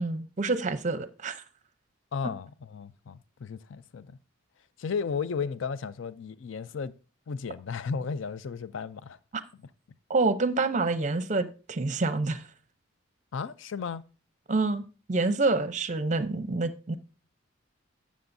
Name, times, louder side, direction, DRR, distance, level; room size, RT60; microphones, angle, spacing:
voice 1, 0.0-1.4 10.1-12.4 14.5-16.9, right 3 dB, 35° right, 0.6 m, -27 dB
voice 2, 2.1-4.2 4.8-6.9 7.3-9.2 13.3-14.0, left 5 dB, 65° left, 0.4 m, -34 dB
13.0 x 7.4 x 2.6 m
head